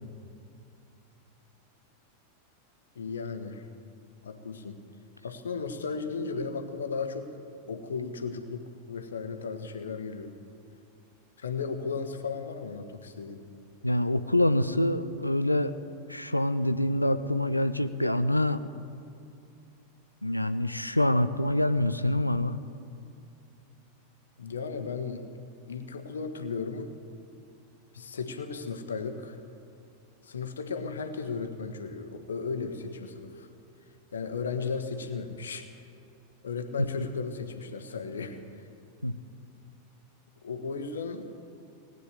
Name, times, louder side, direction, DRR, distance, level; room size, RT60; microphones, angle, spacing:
voice 1, 2.9-3.6 4.2-4.8 5.2-7.3 7.7-10.4 11.4-13.4 24.4-25.2 25.7-26.9 27.9-29.4 30.2-33.5 34.1-35.7 36.4-38.4 40.4-41.3, left 5 dB, 70° left, 7 dB, 1.3 m, -35 dB
voice 2, 13.8-15.7 16.1-18.6 20.2-22.6 39.0-39.1, left 1 dB, 85° left, 12 dB, 0.5 m, -26 dB
18.5 x 9.4 x 8.2 m, 2.6 s
figure-of-eight pair, 90°, 0 cm